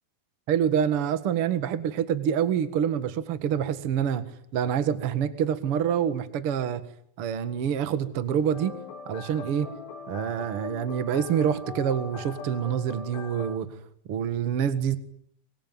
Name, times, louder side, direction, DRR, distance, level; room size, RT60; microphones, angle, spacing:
voice 1, 0.5-4.3 4.5-6.8 7.2-8.7 9.1-9.7 10.1-13.7 14.1-15.0, right 8 dB, 65° right, 1.4 m, -26 dB
sound 1, 8.5-13.6, left 6 dB, 70° left, 3.7 m, -41 dB
24.0 x 23.5 x 9.3 m
omnidirectional pair, 5.4 m